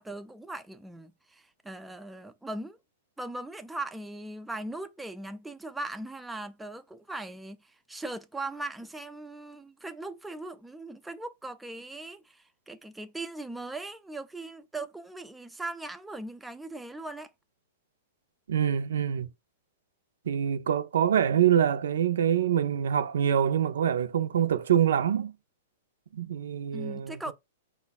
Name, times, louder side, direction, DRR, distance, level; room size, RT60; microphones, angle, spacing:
voice 1, 0.0-2.8 3.2-17.3 26.7-27.3, right 2 dB, 5° right, 0.4 m, -39 dB
voice 2, 18.5-19.3 20.3-25.3 26.1-27.3, right 9 dB, 80° right, 0.6 m, -25 dB
4.9 x 2.3 x 4.1 m
hypercardioid pair, 140°, 0 cm